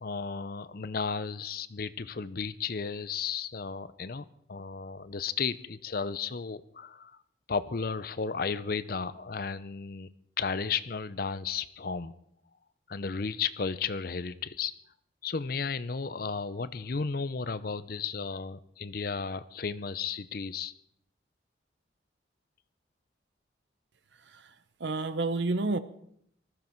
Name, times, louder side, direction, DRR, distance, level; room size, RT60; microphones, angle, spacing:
voice 1, 0.0-7.2 7.5-12.1 12.9-14.7 15.2-20.7, left 5 dB, 50° left, 15 dB, 0.6 m, -34 dB
voice 2, 24.8-25.8, right 2 dB, 70° right, 13 dB, 0.9 m, -29 dB
19.5 x 14.0 x 4.6 m, 0.71 s
head